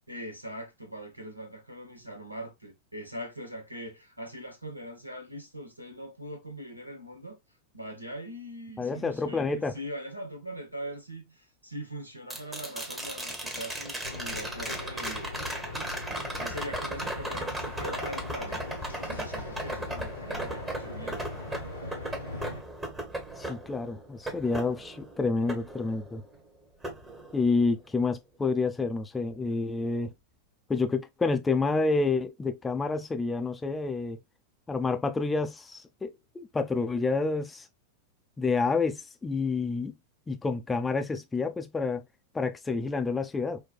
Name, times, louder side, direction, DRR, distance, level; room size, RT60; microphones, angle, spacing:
voice 1, 0.1-7.4 7.7-15.3 16.4-18.8 19.1-21.3, equal, 90° right, 0.9 m, -41 dB
voice 2, 8.8-9.7 23.4-26.2 27.3-30.1 30.7-34.2 34.7-37.7 38.4-40.0 40.3-42.0 42.3-43.6, left 4 dB, 15° left, 0.5 m, -29 dB
sound 1, 12.3-26.4 26.8-27.9 30.1-30.2, right 1 dB, 10° right, 0.9 m, -37 dB
sound 2, 14.0-22.6, left 3 dB, 80° left, 0.8 m, -41 dB
4.4 x 2.2 x 2.3 m
figure-of-eight pair, 90°, 0 cm